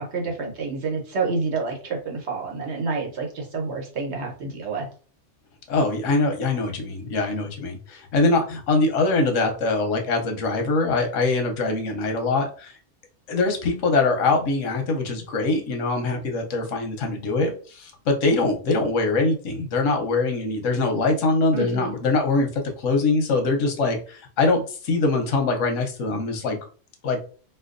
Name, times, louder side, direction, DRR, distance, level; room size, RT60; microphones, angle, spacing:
voice 1, 0.0-4.9 21.5-21.9, right 4 dB, 65° right, 0 dB, 1.2 m, -28 dB
voice 2, 5.7-12.7 13.3-26.6 27.0-27.2, left 3 dB, 85° left, 3 dB, 1.1 m, -23 dB
4.3 x 2.3 x 2.5 m, 0.40 s
omnidirectional pair, 1.3 m